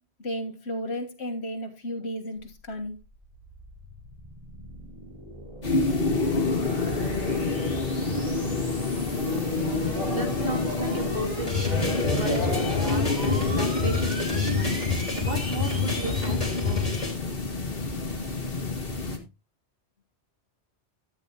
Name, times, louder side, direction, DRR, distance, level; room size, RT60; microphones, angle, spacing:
voice 1, 0.2-3.0, equal, 70° left, 1 dB, 1.8 m, -33 dB
sound 1, 2.4-16.3, equal, 30° right, 4.3 m, -39 dB
sound 2, 5.6-19.2, left 3 dB, 55° left, 2.1 m, -28 dB
voice 2, 10.1-14.8 15.2-16.4 16.6-16.8, right 1 dB, 50° right, 3 dB, 2.3 m, -34 dB
sound 3, 11.5-17.1, left 5 dB, 30° left, 3.9 m, -29 dB
13.0 x 9.0 x 2.9 m, 0.26 s
omnidirectional pair, 1.2 m